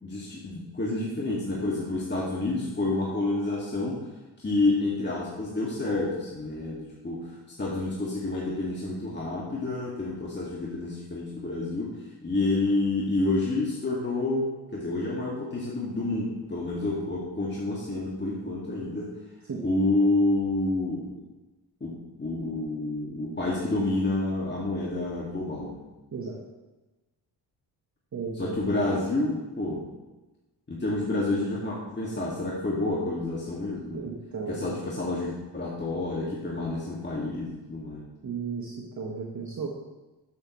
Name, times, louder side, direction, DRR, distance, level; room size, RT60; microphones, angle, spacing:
voice 1, 0.0-4.1 4.4-14.5 14.7-19.1 19.6-21.1 21.8-25.8 28.3-29.8 30.7-34.0 34.5-38.0, left 2 dB, 25° left, -5 dB, 2.0 m, -29 dB
voice 2, 28.1-28.7 33.9-34.7 38.2-39.7, right 5 dB, 40° right, -2 dB, 1.5 m, -35 dB
12.0 x 7.1 x 3.2 m, 1.1 s
supercardioid pair, 65°, 44 cm